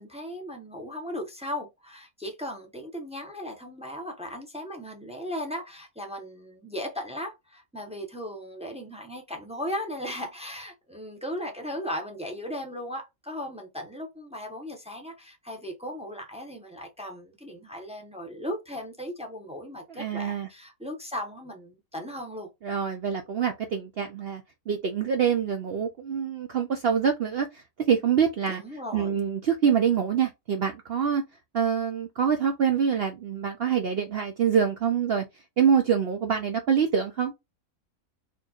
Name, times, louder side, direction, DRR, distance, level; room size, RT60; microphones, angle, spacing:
voice 1, 0.0-22.5 28.5-29.2, equal, 5° right, 0.7 m, -37 dB
voice 2, 20.0-20.5 22.6-28.6 28.9-31.2 31.5-35.2 35.6-37.3, right 7 dB, 60° right, 0.6 m, -25 dB
4.3 x 3.0 x 2.4 m
omnidirectional pair, 1.5 m